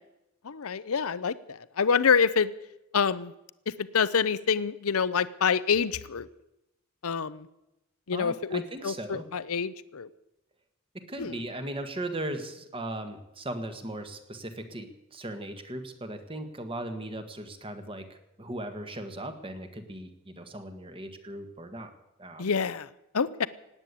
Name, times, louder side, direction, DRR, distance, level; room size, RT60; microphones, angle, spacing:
voice 1, 0.4-2.5 2.9-3.3 3.7-6.3 7.0-7.5 8.1-10.1 11.2-11.3 22.4-22.9 23.1-23.5, left 6 dB, 65° left, 16 dB, 0.7 m, -27 dB
voice 2, 8.1-9.3 10.9-21.9 22.2-22.5, right 1 dB, 25° right, 8 dB, 1.6 m, -38 dB
18.0 x 9.4 x 8.3 m, 0.91 s
head